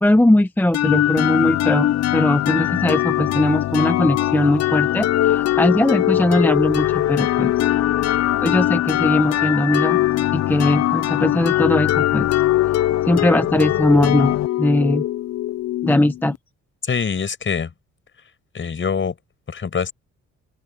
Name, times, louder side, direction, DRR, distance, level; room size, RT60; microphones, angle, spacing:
voice 1, 0.0-7.5 8.4-10.0 10.3-12.3 13.1-15.0 15.8-16.3, left 1 dB, 5° left, 0.8 m, -19 dB
sound 1, 0.7-16.4, left 13 dB, 55° left, 0.5 m, -21 dB
voice 2, 16.8-17.7 18.5-19.2 19.5-19.9, left 6 dB, 40° left, 5.6 m, -24 dB
cardioid pair, 90°, 30 cm